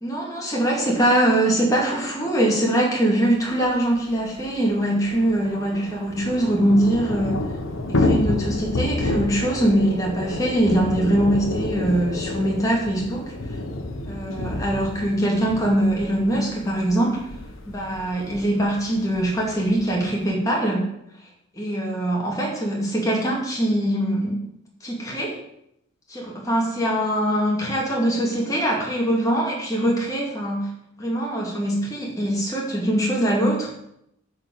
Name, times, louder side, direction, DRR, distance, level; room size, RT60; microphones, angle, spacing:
voice 1, 0.0-7.4 7.9-13.3 14.1-17.2 17.7-20.9 21.5-24.4 24.8-25.4 26.1-30.7 31.0-33.7, right 1 dB, 15° left, -3 dB, 2.3 m, -22 dB
Thunder / Rain, 3.7-3.8 4.0-4.1 4.4-20.3, left 2 dB, 85° left, 1.1 m, -29 dB
9.5 x 4.6 x 6.7 m, 0.77 s
head